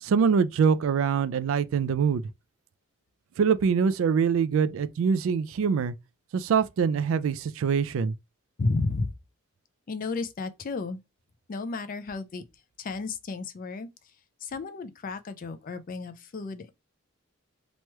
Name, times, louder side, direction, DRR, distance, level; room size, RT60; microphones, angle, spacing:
voice 1, 0.0-2.2 3.4-5.9 6.3-8.1, right 6 dB, 65° right, 0.3 m, -24 dB
voice 2, 8.6-9.1 9.9-11.0 11.5-12.4 12.8-13.9 14.4-16.7, left 3 dB, 40° left, 0.4 m, -32 dB
3.0 x 2.2 x 2.9 m
head